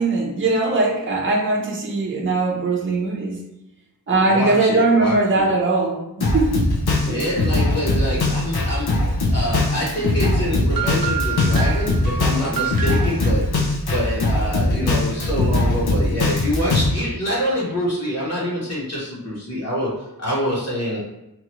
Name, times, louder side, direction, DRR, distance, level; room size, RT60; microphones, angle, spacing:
voice 1, 0.0-3.4 4.1-6.7 7.1-7.2, right 3 dB, 30° right, -3 dB, 0.6 m, -20 dB
voice 2, 4.1-5.5 7.0-21.0, equal, 40° left, -8 dB, 1.0 m, -26 dB
Drum kit, 6.2-16.9, left 2 dB, 75° left, 0.7 m, -21 dB
sound 1, 10.7-13.3, right 8 dB, 65° right, 0.7 m, -28 dB
2.9 x 2.4 x 3.0 m, 0.89 s
wide cardioid pair, 75°, 38 cm